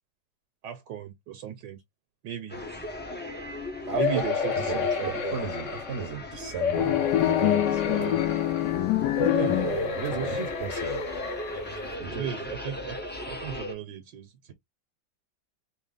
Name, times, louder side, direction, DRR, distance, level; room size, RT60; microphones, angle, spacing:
voice 1, 0.6-1.8 2.2-2.6 3.9-5.4 7.9-8.2 9.4-10.4 12.1-13.0 13.3-14.5, right 10 dB, 75° right, 1.4 m, -36 dB
sound 1, 2.5-13.7, left 2 dB, 10° left, 0.4 m, -38 dB
voice 2, 3.9-4.2 4.6-7.0 7.2-8.1 9.3-11.0 12.0-12.2, right 7 dB, 50° right, 0.9 m, -35 dB
sound 2, 4.0-6.1 6.6-8.8 9.2-12.0 12.6-12.7 13.0-13.1, left 6 dB, 50° left, 1.0 m, -31 dB
sound 3, 6.7-10.2, left 13 dB, 70° left, 1.2 m, -25 dB
4.1 x 2.1 x 3.8 m
omnidirectional pair, 2.0 m